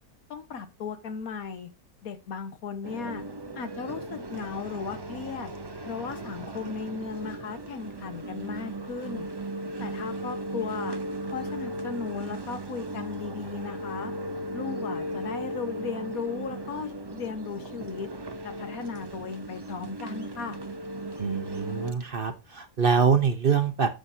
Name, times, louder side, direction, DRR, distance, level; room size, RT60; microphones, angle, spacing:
voice 1, 0.3-1.7 2.0-3.2 3.5-5.5 5.8-9.3 9.8-11.0 11.3-14.1 14.5-18.1 18.4-20.6, left 6 dB, 75° left, 1.6 m, -36 dB
sound 1, 2.8-21.9, right 1 dB, 30° right, 0.5 m, -36 dB
voice 2, 21.2-23.9, right 6 dB, 45° right, 0.9 m, -24 dB
10.0 x 7.7 x 2.7 m
omnidirectional pair, 1.5 m